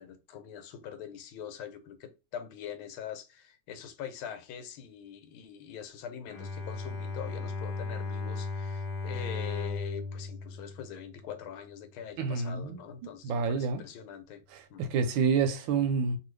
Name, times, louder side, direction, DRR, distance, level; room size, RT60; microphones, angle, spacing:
voice 1, 0.0-14.4 14.7-14.8, left 9 dB, 85° left, 1.5 m, -43 dB
Bowed string instrument, 6.3-11.5, left 3 dB, 60° left, 1.2 m, -36 dB
voice 2, 12.2-12.8 13.2-13.8 14.5-16.2, right 5 dB, 75° right, 1.2 m, -28 dB
3.0 x 2.6 x 3.1 m
omnidirectional pair, 2.3 m